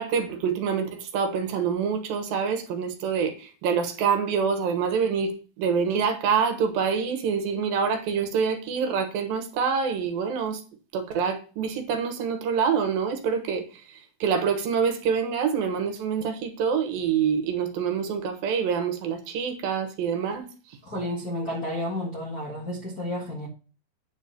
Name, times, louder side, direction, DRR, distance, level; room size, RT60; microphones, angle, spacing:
voice 1, 0.0-10.6 10.9-20.5, right 6 dB, 70° right, 2.8 m, -26 dB
voice 2, 20.9-23.5, left 1 dB, 40° left, 1.4 m, -31 dB
9.9 x 4.1 x 6.7 m
omnidirectional pair, 4.3 m